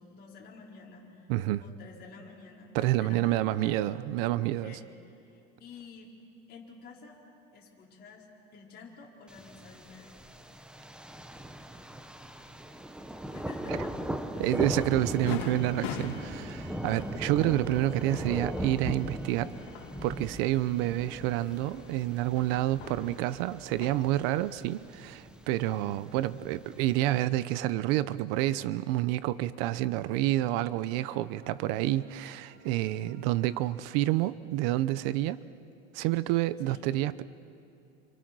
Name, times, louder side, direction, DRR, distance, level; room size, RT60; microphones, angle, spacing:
voice 1, 0.0-1.3 1.6-4.0 4.4-6.1 6.5-7.2 7.5-10.2 13.3-14.0 14.3-14.5 31.1-31.8 36.6-36.9, left 4 dB, 35° left, -3 dB, 4.9 m, -51 dB
voice 2, 1.3-1.6 2.7-4.8 13.7-13.8 14.4-19.5 20.0-35.4 35.9-37.2, right 15 dB, 75° right, 16 dB, 0.8 m, -29 dB
Thunder, 9.3-27.3, right 1 dB, 5° right, 0.9 m, -39 dB
sound 1, 14.5-24.0 30.2-33.7, right 2 dB, 45° right, 3.0 m, -59 dB
sound 2, 15.3-24.0, left 7 dB, 70° left, 2.9 m, -43 dB
29.5 x 26.0 x 6.2 m, 2.6 s
cardioid pair, 155°, 29 cm